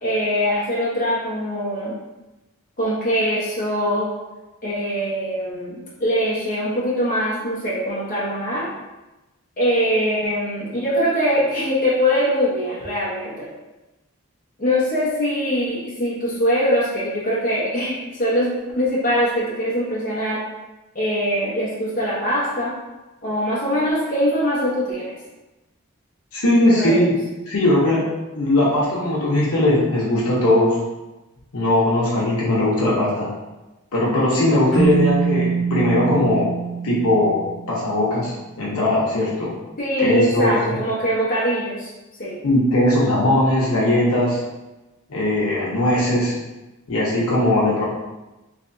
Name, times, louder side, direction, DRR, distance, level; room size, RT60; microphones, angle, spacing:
voice 1, 0.0-1.9 2.8-4.1 4.6-8.7 9.6-13.5 14.6-20.4 20.9-22.8 23.2-25.1 26.7-27.1 39.8-41.9 42.2-42.4, equal, 40° left, -8 dB, 1.1 m, -22 dB
voice 2, 26.3-27.2 27.5-28.0 28.3-30.8 31.5-33.3 33.9-36.5 36.8-38.3 38.6-39.5 40.0-40.8 42.4-44.4 45.1-46.4 46.9-47.8, left 1 dB, 85° left, -6 dB, 1.0 m, -19 dB
Keyboard (musical), 34.7-38.0, right 5 dB, ahead, 1.1 m, -24 dB
3.3 x 3.2 x 2.7 m, 1.1 s
head